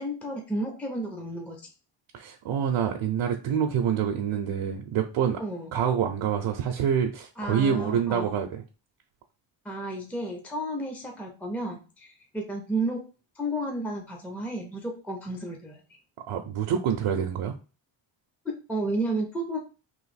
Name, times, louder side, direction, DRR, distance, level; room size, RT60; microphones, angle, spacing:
voice 1, 0.0-1.6 5.4-5.7 7.4-8.3 9.6-13.0 13.4-16.0 18.4-19.6, right 1 dB, 5° left, 0.5 m, -32 dB
voice 2, 2.1-5.4 5.7-8.6 16.3-17.6, right 8 dB, 65° right, 0.6 m, -26 dB
3.1 x 2.6 x 4.1 m
cardioid pair, 130°, 49 cm